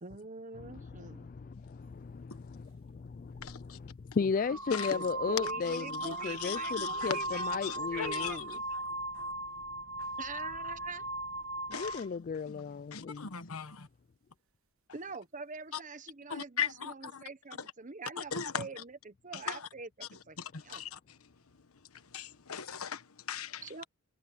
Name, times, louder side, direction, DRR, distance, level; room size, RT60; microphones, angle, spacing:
voice 1, 0.0-1.3 4.9-8.4 10.2-11.1 14.9-20.4 20.6-20.8 23.6-23.8, right 4 dB, 35° right, 1.2 m, -44 dB
voice 2, 0.6-8.6 11.7-13.4, left 5 dB, 40° left, 0.4 m, -36 dB
voice 3, 3.4-3.8 4.7-4.9 5.7-8.4 9.1-9.3 11.7-12.0 12.9-13.9 16.3-17.2 18.2-18.7 19.5-19.7 20.4-21.0 21.9-23.8, left 7 dB, 80° left, 1.3 m, -39 dB
sound 1, 3.4-3.6 4.4-12.1, right 1 dB, 70° right, 1.2 m, -38 dB
head